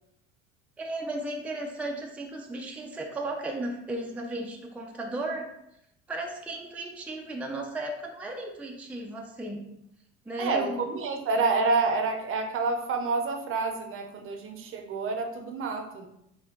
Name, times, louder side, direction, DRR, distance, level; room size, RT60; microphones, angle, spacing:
voice 1, 0.8-5.5 6.1-9.6 10.3-10.8, right 2 dB, 5° right, 1 dB, 0.5 m, -35 dB
voice 2, 10.4-16.1, right 3 dB, 45° right, 4 dB, 0.7 m, -28 dB
4.2 x 2.2 x 4.4 m, 0.80 s
supercardioid pair, 105°, 29 cm